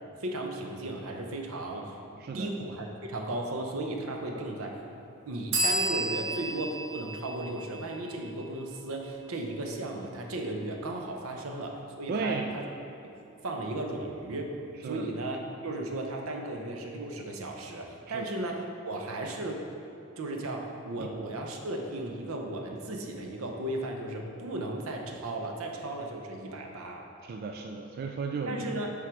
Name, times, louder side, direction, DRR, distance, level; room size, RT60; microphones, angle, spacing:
voice 1, 0.2-4.8 5.2-12.7 13.0-13.2 13.4-14.5 14.8-19.6 20.2-27.1 28.5-28.9, right 1 dB, 85° right, 2 dB, 0.8 m, -35 dB
voice 2, 2.2-2.5 4.3-4.4 12.1-12.5 14.8-15.1 18.1-18.3 21.0-21.1 27.2-28.7, right 4 dB, 45° right, 3 dB, 0.3 m, -34 dB
sound 1, 5.5-9.1, right 2 dB, 60° right, 1.3 m, -33 dB
7.5 x 3.8 x 4.8 m, 2.7 s
head